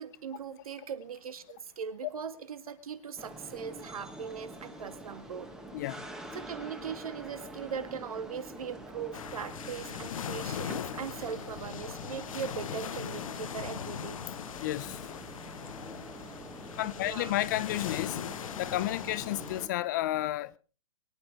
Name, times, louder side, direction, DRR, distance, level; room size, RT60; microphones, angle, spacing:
voice 1, 0.0-5.5 6.3-14.2 17.0-17.4, right 7 dB, 75° right, 2.1 m, -40 dB
sound 1, 3.2-19.7, right 1 dB, 5° right, 1.4 m, -46 dB
voice 2, 5.7-6.0 14.6-15.0 16.8-18.2 18.6-20.6, left 15 dB, 30° left, 0.6 m, -31 dB
sound 2, 9.1-19.7, left 9 dB, 65° left, 0.9 m, -40 dB
23.5 x 9.5 x 4.6 m
hypercardioid pair, 160°, 18 cm